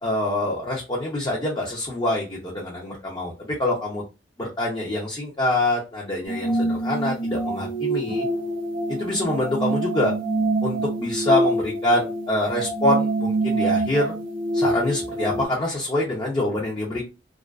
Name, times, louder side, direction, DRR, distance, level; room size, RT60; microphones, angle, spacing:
voice 1, 0.0-4.0 4.4-8.3 9.0-10.1 10.6-14.1 14.5-17.1, left 1 dB, 25° left, -3 dB, 0.5 m, -25 dB
sound 1, 6.2-15.5, right 2 dB, 50° right, 0.8 m, -25 dB
2.3 x 2.3 x 2.3 m, 0.28 s
head